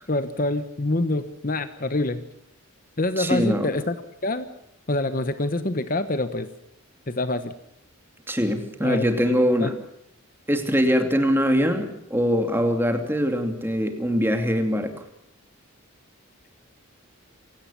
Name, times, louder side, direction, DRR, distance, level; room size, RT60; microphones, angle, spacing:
voice 1, 0.1-2.3 3.0-4.0 4.2-4.5 4.9-6.5 7.1-7.6 8.8-9.1 9.6-9.8, left 2 dB, 40° left, 11 dB, 1.1 m, -26 dB
voice 2, 3.2-3.7 8.3-9.7 10.5-14.9, equal, 10° right, 6 dB, 2.6 m, -22 dB
28.5 x 17.0 x 7.1 m, 0.75 s
head